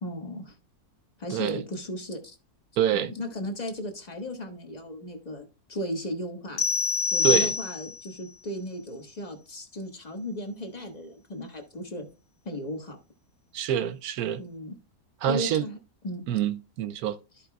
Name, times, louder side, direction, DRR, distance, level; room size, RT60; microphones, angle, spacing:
voice 1, 0.0-0.5 1.2-2.4 2.9-6.6 7.1-12.1 12.4-13.0 14.4-14.7 15.3-15.8 16.0-16.2, equal, 30° left, 1.3 m, -35 dB
voice 2, 1.3-1.6 2.8-3.1 7.2-7.5 13.5-14.4 15.2-15.6 16.3-17.2, right 10 dB, 75° right, 1.0 m, -26 dB
sound 1, 6.6-8.1, left 5 dB, 65° left, 1.5 m, -26 dB
13.5 x 5.1 x 2.3 m
omnidirectional pair, 1.7 m